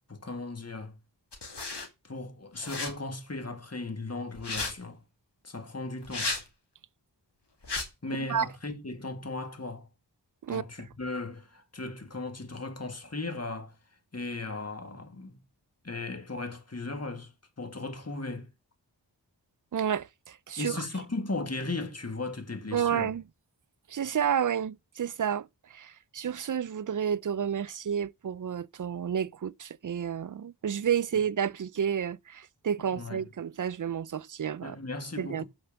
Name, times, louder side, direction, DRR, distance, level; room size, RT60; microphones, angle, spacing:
voice 1, 0.1-1.0 2.0-5.0 5.4-6.4 8.0-9.9 10.5-13.7 14.1-15.4 15.8-17.3 17.6-18.5 20.6-23.1 32.9-33.2 34.6-35.4, left 2 dB, 35° left, 1.8 m, -37 dB
sound 1, 1.3-1.9 2.6-2.9 4.3-4.7 6.0-6.4 7.6-7.9, left 3 dB, 70° left, 2.1 m, -33 dB
voice 2, 19.7-20.8 22.7-23.2 23.9-34.8 35.2-35.4, right 8 dB, 45° right, 0.5 m, -30 dB
8.7 x 4.4 x 6.9 m
wide cardioid pair, 45°, 43 cm